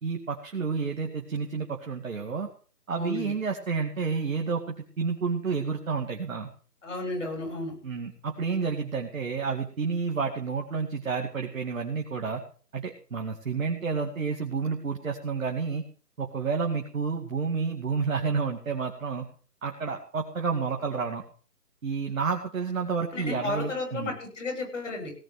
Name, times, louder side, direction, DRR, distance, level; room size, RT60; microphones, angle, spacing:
voice 1, 0.0-2.5 2.9-6.5 7.8-12.4 12.7-15.8 16.2-19.3 19.6-21.2 21.8-24.1, right 5 dB, 55° right, 2 dB, 2.2 m, -30 dB
voice 2, 2.9-3.4 6.8-7.8 23.1-25.1, left 2 dB, 50° left, 2 dB, 7.3 m, -33 dB
17.5 x 6.2 x 9.1 m, 0.41 s
figure-of-eight pair, 160°, 47 cm